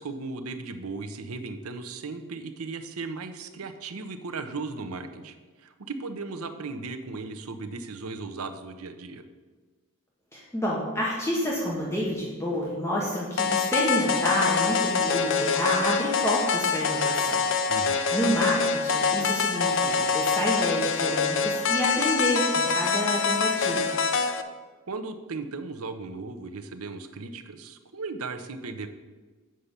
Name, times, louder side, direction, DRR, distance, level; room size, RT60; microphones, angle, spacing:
voice 1, 0.0-9.2 17.7-18.0 24.9-28.9, right 3 dB, 90° right, 8 dB, 0.8 m, -36 dB
voice 2, 10.3-17.4 18.1-23.9, equal, 15° left, -5 dB, 1.4 m, -29 dB
sound 1, 13.4-24.4, left 5 dB, 65° left, 0.7 m, -25 dB
7.6 x 5.6 x 6.7 m, 1.4 s
head